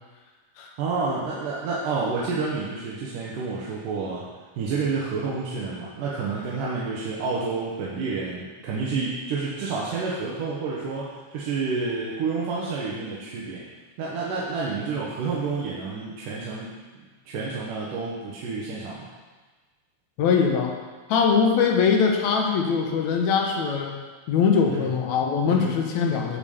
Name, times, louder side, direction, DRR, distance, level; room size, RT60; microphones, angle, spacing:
voice 1, 0.8-4.2 4.6-13.6 14.0-16.8 17.3-19.1 24.7-24.9 25.5-25.7, right 4 dB, 80° right, -6 dB, 2.6 m, -29 dB
voice 2, 20.2-20.8 21.1-24.0 24.3-26.4, left 6 dB, 70° left, 2 dB, 2.1 m, -22 dB
8.8 x 5.2 x 7.0 m, 1.3 s
omnidirectional pair, 3.8 m